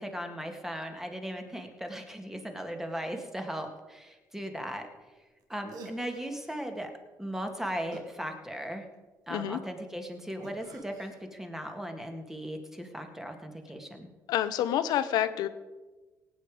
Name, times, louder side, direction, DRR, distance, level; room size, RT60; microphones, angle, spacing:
voice 1, 0.0-4.9 5.5-6.9 7.2-8.8 9.3-14.1, equal, 5° right, 5 dB, 1.9 m, -37 dB
sound 1, 5.4-5.5 5.7-6.7 7.9-8.9 10.4-11.2, right 4 dB, 70° right, 1.7 m, -50 dB
voice 2, 9.3-9.6 14.3-15.5, left 11 dB, 85° left, 13 dB, 0.8 m, -28 dB
18.0 x 9.0 x 4.9 m, 1.2 s
cardioid pair, 95°, 7 cm